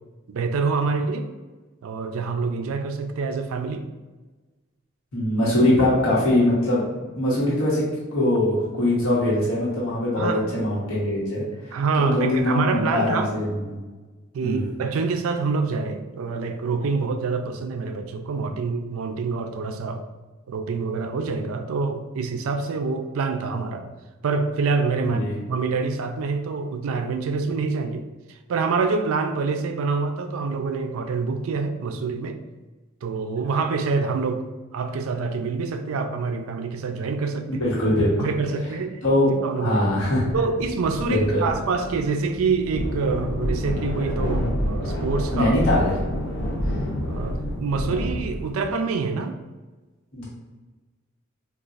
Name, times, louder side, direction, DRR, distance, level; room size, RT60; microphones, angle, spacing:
voice 1, 0.3-1.3 1.8-3.8 10.2-10.4 11.7-13.3 14.3-20.0 20.5-23.9 24.2-25.2 25.5-28.1 28.5-32.4 33.0-34.4 34.7-37.6 38.2-39.0 39.4-39.8 40.3-45.6 47.0-49.4, right 4 dB, 75° right, 6 dB, 0.4 m, -26 dB
voice 2, 5.1-6.8 7.1-7.8 8.1-11.4 12.0-13.8 14.4-14.7 25.0-25.3 37.5-38.3 39.0-39.3 39.6-40.3 41.0-41.5 45.3-46.0 50.1-50.2, left 1 dB, 75° left, -7 dB, 1.1 m, -22 dB
sound 1, 40.3-48.6, equal, 55° left, 0.6 m, -28 dB
4.0 x 2.3 x 2.4 m, 1.2 s
head